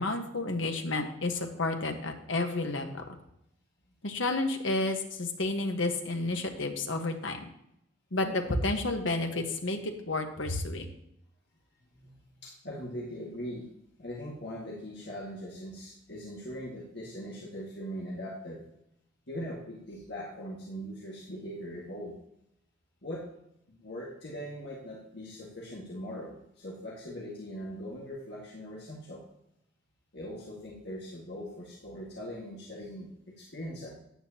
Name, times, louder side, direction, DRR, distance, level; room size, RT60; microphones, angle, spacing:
voice 1, 0.0-3.0 4.0-7.4 8.1-10.9, left 2 dB, 80° left, 4 dB, 1.4 m, -31 dB
voice 2, 12.4-13.7 14.0-18.6 19.3-22.2 23.0-23.3 23.7-29.2 30.1-33.9, equal, 55° left, -3 dB, 1.9 m, -41 dB
13.5 x 9.4 x 2.9 m, 0.79 s
head